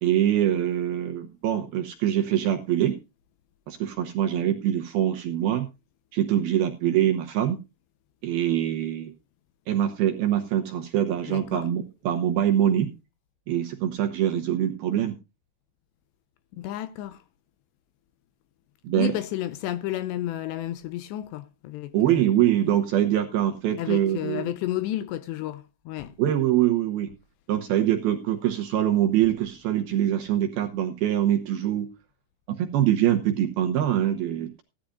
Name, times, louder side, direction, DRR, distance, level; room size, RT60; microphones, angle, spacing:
voice 1, 0.0-3.0 3.7-5.7 6.1-7.6 8.2-9.1 9.7-12.9 13.5-15.2 18.8-19.1 21.9-24.5 26.2-27.1 27.5-31.9 32.5-34.6, right 11 dB, 70° right, 2.4 m, -24 dB
voice 2, 11.3-11.7 16.6-17.2 19.0-22.2 23.8-26.2, left 13 dB, 75° left, 2.8 m, -32 dB
17.0 x 11.5 x 2.4 m
omnidirectional pair, 5.5 m